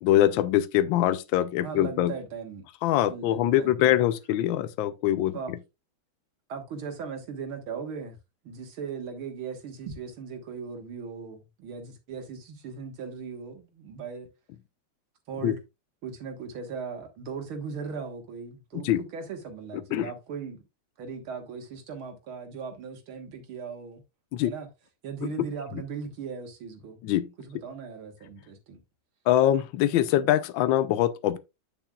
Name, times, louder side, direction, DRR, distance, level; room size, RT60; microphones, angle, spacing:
voice 1, 0.0-2.1 2.8-5.6 15.4-15.5 18.7-19.0 19.9-20.1 24.3-24.5 27.0-27.3 29.3-31.4, left 12 dB, 75° left, 1.4 m, -23 dB
voice 2, 1.6-2.6 3.0-4.0 5.3-5.6 6.5-8.2 8.4-14.3 15.3-15.6 16.0-20.6 21.0-24.0 24.4-24.7 25.0-27.0 27.4-28.8, right 5 dB, 80° right, 2.4 m, -38 dB
8.9 x 6.9 x 2.3 m
omnidirectional pair, 2.3 m